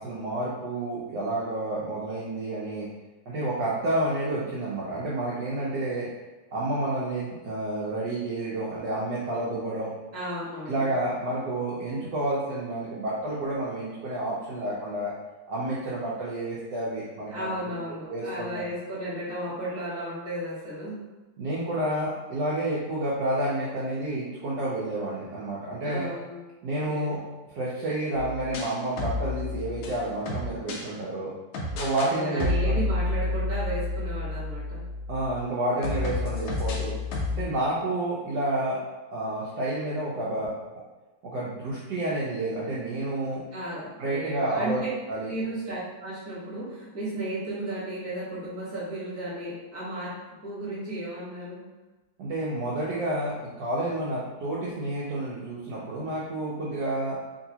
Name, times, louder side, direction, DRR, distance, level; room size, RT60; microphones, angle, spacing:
voice 1, 0.0-2.9 3.3-6.1 6.5-9.9 10.7-15.1 15.5-17.7 18.1-18.7 21.4-26.1 26.6-27.2 27.5-31.3 31.7-32.8 35.1-36.9 37.3-38.8 39.1-40.5 41.2-43.4 44.0-44.8 45.1-45.3 52.2-53.3 53.6-57.2, right 1 dB, 75° right, -7 dB, 1.0 m, -30 dB
voice 2, 10.1-10.9 17.3-20.9 25.8-26.3 26.9-27.1 32.1-34.8 43.5-44.9 45.3-50.1 50.4-51.6, right 1 dB, 10° right, -9 dB, 0.8 m, -34 dB
sound 1, 28.2-30.8 31.5-32.1 32.4-35.4 35.8-37.4, left 2 dB, 85° left, 1.6 m, -30 dB
3.8 x 2.6 x 2.7 m, 1.2 s
omnidirectional pair, 2.4 m